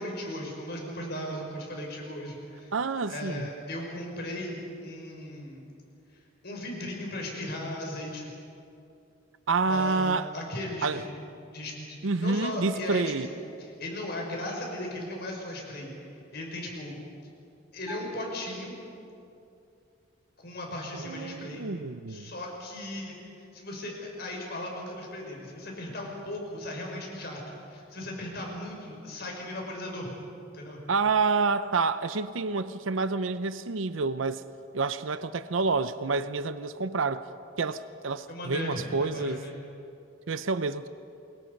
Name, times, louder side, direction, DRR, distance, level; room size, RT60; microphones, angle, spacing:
voice 1, 0.0-2.7 3.1-5.7 6.4-8.3 9.7-11.1 11.5-17.0 17.7-18.7 20.4-21.6 22.1-30.1 30.5-30.8 38.3-39.5, left 1 dB, 55° left, 0 dB, 5.6 m, -37 dB
voice 2, 2.7-3.5 9.5-10.3 10.8-11.0 12.0-13.3 20.9-22.3 30.9-34.4 34.7-37.3 37.6-39.4 40.3-40.9, right 4 dB, 80° right, 12 dB, 0.7 m, -28 dB
Bell, 17.9-19.5, right 2 dB, 10° right, 0.8 m, -47 dB
29.0 x 22.5 x 5.3 m, 2.6 s
head